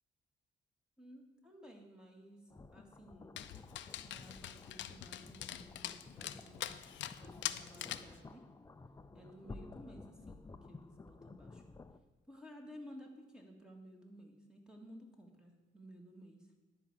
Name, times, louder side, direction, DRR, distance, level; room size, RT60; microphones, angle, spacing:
voice 1, 1.0-2.4 2.7-3.4 4.0-6.8 7.2-8.4 9.1-10.4 10.7-11.6 12.3-16.5, equal, 5° right, 2 dB, 1.9 m, -55 dB
sound 1, 2.5-12.0, left 3 dB, 15° left, 0.5 m, -54 dB
Dog, 3.4-8.2, left 12 dB, 65° left, 0.5 m, -44 dB
11.0 x 4.9 x 7.1 m, 1.1 s
cardioid pair, 90°, 20 cm